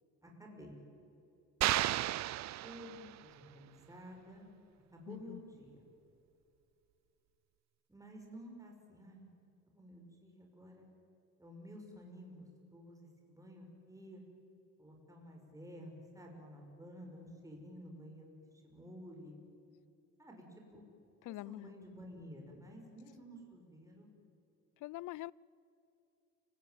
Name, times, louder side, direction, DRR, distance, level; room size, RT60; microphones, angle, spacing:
voice 1, 0.2-0.8 2.6-4.5 4.9-5.8 7.9-9.3 9.7-10.9 11.4-14.2 14.8-18.3 18.6-19.4 20.2-20.8 21.3-24.1, equal, 10° right, 6.3 m, -52 dB
sound 1, 1.6-3.3, right 15 dB, 65° right, 0.5 m, -33 dB
voice 2, 5.1-5.4 21.3-21.7 24.8-25.3, left 18 dB, 80° left, 0.6 m, -44 dB
29.5 x 19.0 x 9.4 m
cardioid pair, 90°, 30 cm